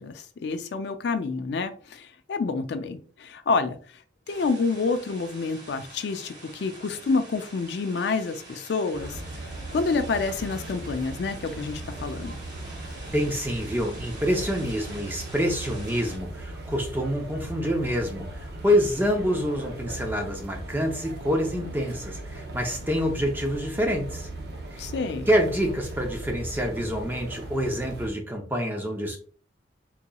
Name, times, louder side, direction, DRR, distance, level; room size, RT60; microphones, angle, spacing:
voice 1, 0.0-3.8 4.3-9.2 9.7-12.4 24.8-25.3, left 4 dB, 65° left, 0.4 m, -28 dB
sound 1, 4.3-16.2, right 2 dB, 45° right, 1.2 m, -46 dB
sound 2, 8.9-28.1, right 2 dB, 60° right, 0.7 m, -38 dB
voice 2, 13.1-24.3 24.7-24.8 25.3-29.2, equal, 10° right, 0.6 m, -27 dB
3.8 x 2.9 x 2.2 m
head